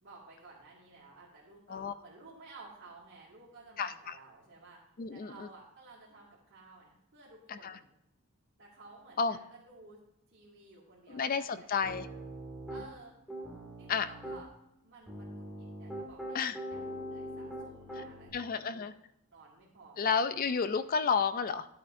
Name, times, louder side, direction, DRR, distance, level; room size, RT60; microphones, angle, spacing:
voice 1, 0.0-4.8 5.1-7.9 8.6-10.0 10.3-11.7 12.7-13.2 13.8-14.5 14.8-16.8 17.1-18.9 19.3-20.4 20.7-20.8, right 3 dB, 55° right, -9 dB, 2.3 m, -55 dB
voice 2, 3.8-4.2 5.0-5.5 7.5-7.8 9.2-9.4 11.1-12.1 13.9-14.1 16.3-16.6 18.3-18.9 20.0-21.7, left 6 dB, 40° left, 13 dB, 0.4 m, -31 dB
Piano, 11.8-12.9 13.3-14.4 15.1-18.3, right 1 dB, ahead, 2.4 m, -42 dB
12.5 x 8.5 x 2.7 m, 0.82 s
head